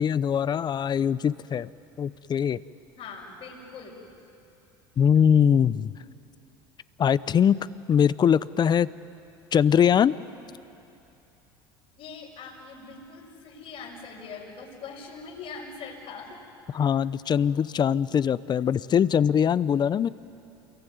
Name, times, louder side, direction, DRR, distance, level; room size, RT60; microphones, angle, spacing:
voice 1, 0.0-1.7 2.0-2.6 5.0-5.9 7.0-7.6 7.9-8.9 9.5-10.1 16.7-20.1, left 8 dB, 35° left, 18 dB, 0.7 m, -22 dB
voice 2, 3.0-4.1 12.0-16.4, left 5 dB, 55° left, -5 dB, 5.9 m, -42 dB
27.5 x 22.5 x 9.4 m, 2.7 s
hypercardioid pair, 85°, 13 cm